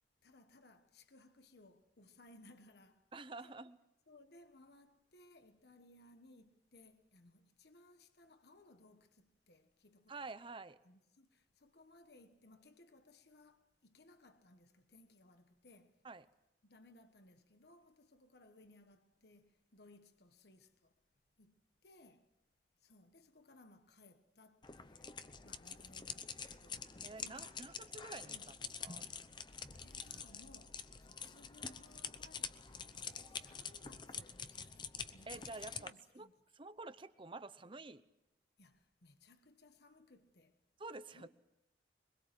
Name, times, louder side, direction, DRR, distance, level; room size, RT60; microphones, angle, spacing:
voice 1, 0.2-3.1 3.4-3.6 4.1-10.2 10.8-16.0 16.6-20.9 21.4-22.3 22.8-27.6 28.3-28.4 29.5-36.3 38.6-40.6 41.1-41.3, left 2 dB, 65° left, 1.4 m, -63 dB
voice 2, 3.1-3.8 10.1-10.8 16.0-16.2 27.0-28.4 28.8-29.1 35.3-36.3 36.5-38.0 40.8-41.3, right 3 dB, 30° right, 0.9 m, -49 dB
sound 1, 24.6-35.9, left 6 dB, 25° left, 0.8 m, -47 dB
23.0 x 21.5 x 7.7 m
head